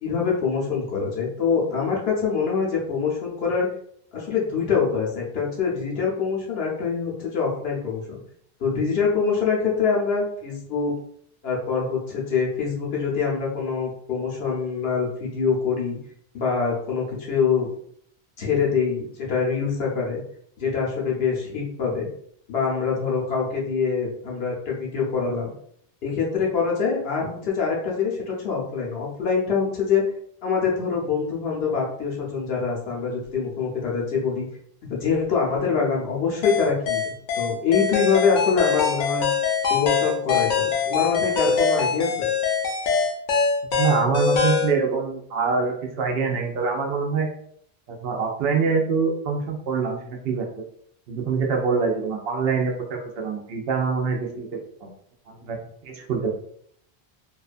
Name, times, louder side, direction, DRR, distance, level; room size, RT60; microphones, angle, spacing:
voice 1, 0.0-3.7 4.1-8.0 8.6-10.9 11.4-16.0 16.3-17.7 18.4-20.2 20.6-22.1 22.5-25.5 26.0-30.0 30.4-34.5 34.9-39.3 39.7-42.3, left 5 dB, 75° left, -3 dB, 1.0 m, -24 dB
sound 1, 36.4-44.7, left 6 dB, 60° left, 0.6 m, -23 dB
voice 2, 43.8-47.3 47.9-50.6 51.1-54.5 54.8-54.9 55.3-55.6 55.8-56.3, right 5 dB, 75° right, 1 dB, 0.8 m, -25 dB
2.6 x 2.2 x 2.4 m, 0.65 s
omnidirectional pair, 1.0 m